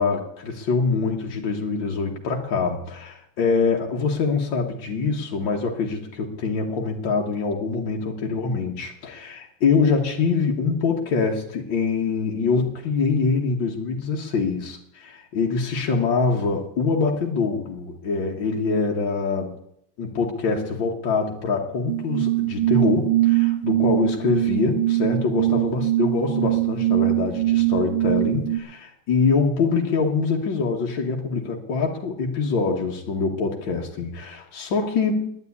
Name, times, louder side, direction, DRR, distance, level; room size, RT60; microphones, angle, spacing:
voice 1, 0.0-19.5 20.0-35.3, left 4 dB, 85° left, -1 dB, 2.1 m, -24 dB
sound 1, 21.9-28.6, right 17 dB, 65° right, 1.8 m, -22 dB
10.5 x 9.6 x 9.6 m, 0.74 s
omnidirectional pair, 2.1 m